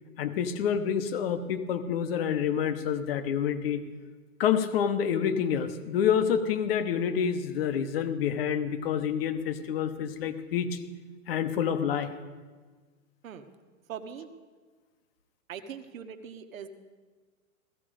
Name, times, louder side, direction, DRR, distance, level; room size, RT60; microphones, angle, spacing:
voice 1, 0.2-3.8 4.4-10.8 11.3-12.1, left 8 dB, 45° left, 10 dB, 1.0 m, -28 dB
voice 2, 13.9-14.3 15.5-16.7, right 8 dB, 75° right, 8 dB, 1.4 m, -41 dB
16.0 x 14.0 x 5.0 m, 1.4 s
hypercardioid pair, 160°, 41 cm